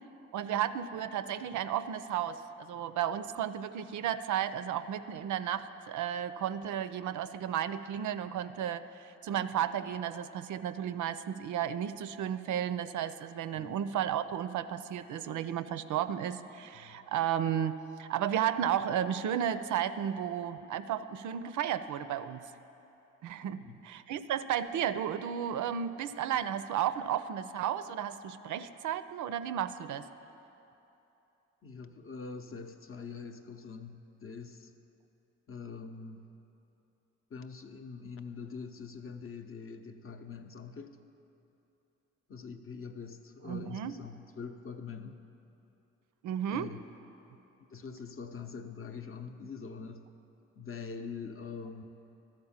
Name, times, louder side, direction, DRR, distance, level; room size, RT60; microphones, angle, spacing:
voice 1, 0.3-8.8 9.2-22.4 23.2-30.1 43.5-43.9 46.2-46.7, right 9 dB, 60° right, 12 dB, 0.5 m, -33 dB
voice 2, 23.4-23.8 31.6-34.7 35.5-36.3 37.3-41.0 42.3-45.3 46.5-46.8 47.7-50.1 50.6-51.8, left 5 dB, 40° left, 6 dB, 0.7 m, -44 dB
12.5 x 4.4 x 7.2 m, 3.0 s
hypercardioid pair, 45°, 34 cm